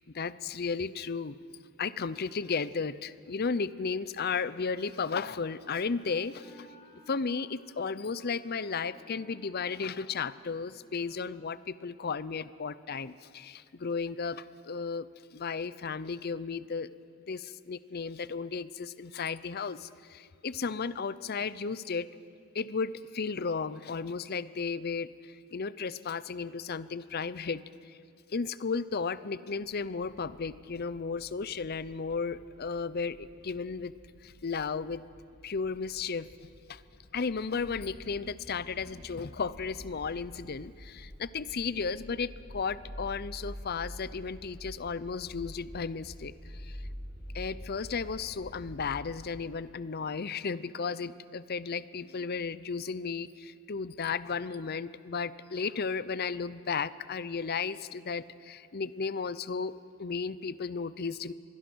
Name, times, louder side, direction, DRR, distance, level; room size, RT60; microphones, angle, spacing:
voice 1, 0.1-1.4 1.8-6.7 7.1-16.9 17.3-22.1 22.5-28.0 28.3-33.9 34.2-35.0 35.4-36.3 36.7-36.8 37.1-46.8 47.3-59.7 60.0-61.3, left 5 dB, 45° left, 16 dB, 0.6 m, -34 dB
Wind instrument woodwind instrument, 4.4-11.5, equal, 60° left, 4.6 m, -58 dB
sound 1, 29.9-49.2, equal, 5° right, 3.7 m, -48 dB
25.0 x 21.5 x 6.3 m, 2.3 s
head